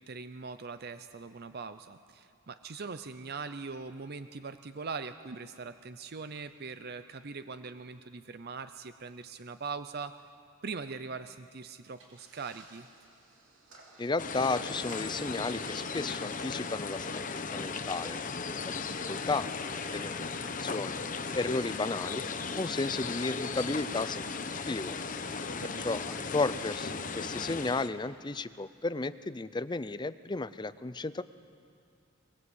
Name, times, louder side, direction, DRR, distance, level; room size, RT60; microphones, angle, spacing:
voice 1, 0.0-10.1 10.6-12.9 25.6-26.0, right 4 dB, 50° right, 11 dB, 0.6 m, -41 dB
sound 1, 11.9-19.1, right 2 dB, 65° right, 4.5 m, -56 dB
voice 2, 14.0-18.2 18.5-21.0 21.3-22.2 22.6-25.0 25.8-31.2, left 3 dB, 20° left, 15 dB, 0.5 m, -34 dB
sound 2, 14.2-27.9, left 4 dB, 40° left, 1.0 m, -36 dB
23.0 x 21.0 x 8.1 m, 2.5 s
head